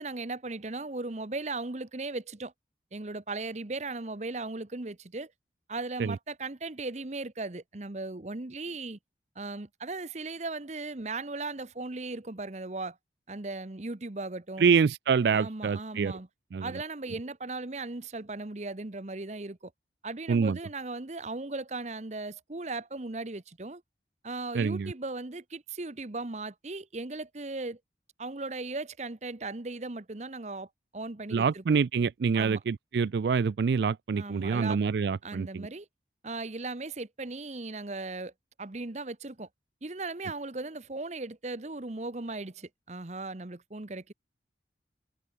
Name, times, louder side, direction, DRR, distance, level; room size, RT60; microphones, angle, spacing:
voice 1, 0.0-2.5 2.9-5.3 5.7-9.0 9.4-13.0 13.3-14.7 15.3-16.3 16.6-19.7 20.0-23.8 24.2-27.8 28.2-30.7 30.9-31.6 32.3-32.6 34.2-34.8 35.2-35.9 36.2-38.3 38.6-39.5 39.8-44.1, right 3 dB, 40° right, 1.0 m, -37 dB
voice 2, 14.6-16.1 16.5-16.8 20.3-20.6 24.5-24.9 31.3-35.7, right 5 dB, 70° right, 0.4 m, -26 dB
head